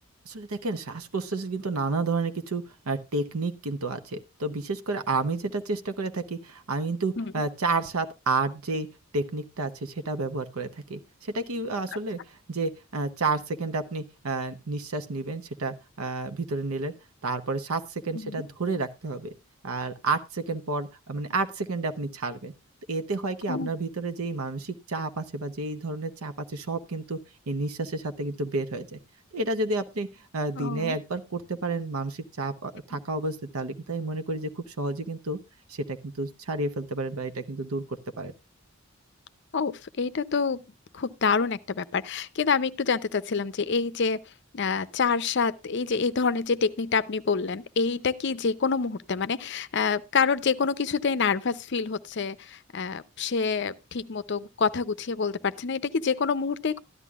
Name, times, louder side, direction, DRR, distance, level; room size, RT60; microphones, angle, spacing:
voice 1, 0.3-8.9 9.1-16.9 17.2-19.3 19.6-22.5 22.9-27.2 27.5-29.0 29.3-35.4 35.7-38.3, right 3 dB, 85° right, 0.8 m, -30 dB
voice 2, 30.6-31.0 39.5-40.6 40.9-44.2 44.5-56.8, left 5 dB, 55° left, 0.6 m, -27 dB
13.5 x 11.0 x 2.3 m
head